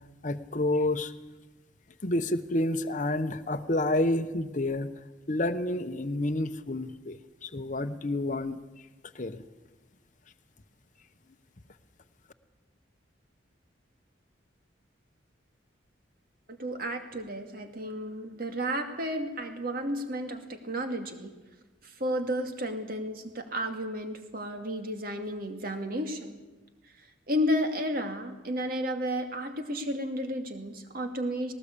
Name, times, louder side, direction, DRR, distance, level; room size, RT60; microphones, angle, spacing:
voice 1, 0.2-1.1 2.0-4.9 5.3-8.6 9.1-9.4, left 1 dB, 40° left, 7 dB, 0.9 m, -29 dB
voice 2, 16.6-21.3 21.8-26.4 27.3-31.5, equal, 50° right, 5 dB, 2.3 m, -32 dB
19.0 x 18.5 x 8.5 m, 1.2 s
head